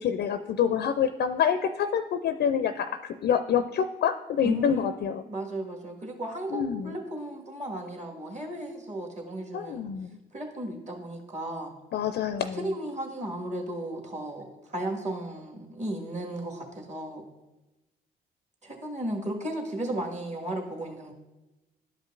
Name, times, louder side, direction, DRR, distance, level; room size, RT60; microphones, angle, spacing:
voice 1, 0.0-5.2 6.5-7.0 9.5-10.2 11.9-12.6, left 8 dB, 55° left, 10 dB, 0.4 m, -27 dB
voice 2, 4.4-4.9 5.2-9.8 10.3-11.7 12.6-17.3 18.6-21.1, right 1 dB, 35° right, 0 dB, 1.7 m, -35 dB
12.0 x 5.2 x 2.5 m, 1.1 s
hypercardioid pair, 50°, 20 cm